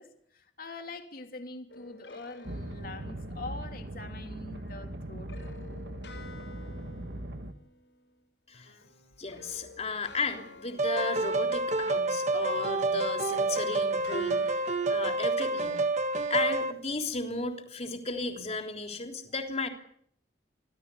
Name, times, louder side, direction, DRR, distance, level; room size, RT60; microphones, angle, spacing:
voice 1, 0.0-5.3, left 2 dB, 55° left, 5 dB, 3.1 m, -44 dB
sound 1, 1.7-3.6 4.5-8.2 8.5-12.1 12.5-16.0, left 3 dB, 85° left, 7.1 m, -52 dB
sound 2, 2.5-7.5, right 1 dB, 70° right, 1.9 m, -40 dB
voice 2, 9.2-15.8 16.3-19.7, left 3 dB, 35° left, 4 dB, 3.4 m, -34 dB
sound 3, 10.8-16.7, right 3 dB, 40° right, 1.7 m, -28 dB
26.0 x 16.5 x 8.5 m, 0.66 s
head